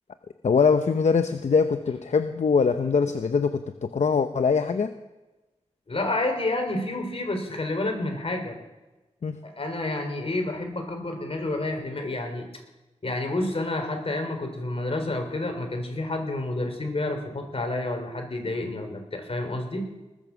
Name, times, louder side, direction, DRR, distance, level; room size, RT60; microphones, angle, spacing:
voice 1, 0.4-4.9 9.2-9.4, left 5 dB, 75° left, 8 dB, 0.7 m, -23 dB
voice 2, 5.9-8.6 9.4-12.5 13.0-19.9, left 2 dB, 55° left, 4 dB, 3.9 m, -29 dB
20.5 x 7.1 x 7.0 m, 1.1 s
cardioid pair, 50°, 12 cm